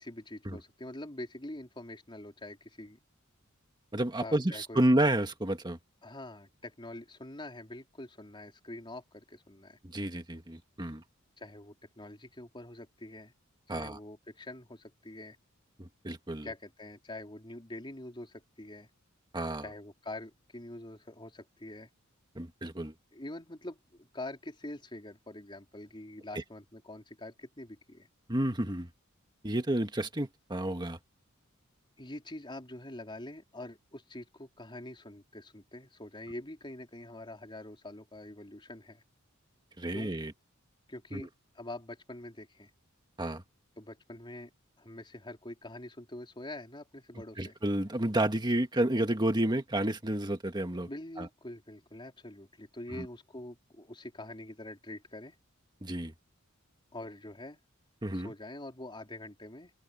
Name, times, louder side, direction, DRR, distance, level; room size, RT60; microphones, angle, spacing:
voice 1, 0.0-3.0 4.2-4.8 6.0-9.8 11.4-13.3 13.7-15.4 16.4-18.9 19.6-21.9 23.1-28.1 32.0-39.0 39.9-40.1 40.9-41.3 41.5-42.7 43.8-44.5 44.8-47.6 50.9-55.4 56.9-57.6 58.1-59.7, left 1 dB, 25° left, 3.9 m, -45 dB
voice 2, 3.9-5.8 9.8-11.0 13.7-14.0 15.8-16.5 19.3-19.6 22.4-22.9 28.3-28.9 29.4-31.0 39.8-40.3 41.1-41.3 43.2-43.4 47.4-50.9 51.2-51.3 53.0-53.1 55.8-56.1 58.0-58.3, right 1 dB, 20° right, 1.9 m, -30 dB
open air
head